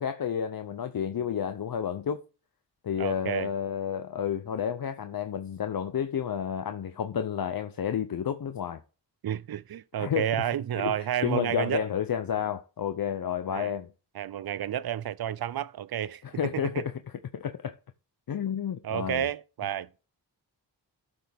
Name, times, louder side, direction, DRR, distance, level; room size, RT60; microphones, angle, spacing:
voice 1, 0.0-2.2 2.8-8.8 10.0-10.5 10.8-13.9 16.2-16.9 17.3-17.7 18.3-19.3, left 8 dB, 55° left, 0.7 m, -31 dB
voice 2, 3.0-3.5 9.2-11.8 13.5-13.7 14.1-16.2 16.5-16.8 18.8-19.9, right 10 dB, 60° right, 0.6 m, -31 dB
12.5 x 6.2 x 3.5 m
wide cardioid pair, 100°, 42 cm